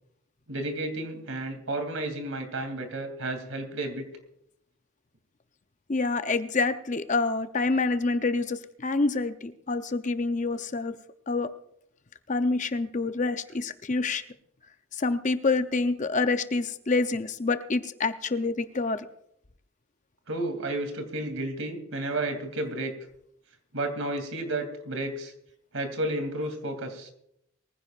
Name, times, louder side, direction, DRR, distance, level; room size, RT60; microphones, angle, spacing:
voice 1, 0.5-4.0 20.3-22.9 23.7-25.3 25.7-27.1, right 2 dB, 65° right, 5 dB, 2.8 m, -32 dB
voice 2, 5.9-10.9 11.3-11.5 12.3-14.2 14.9-19.1, left 3 dB, 35° left, 10 dB, 0.6 m, -27 dB
23.5 x 15.5 x 2.5 m, 0.75 s
head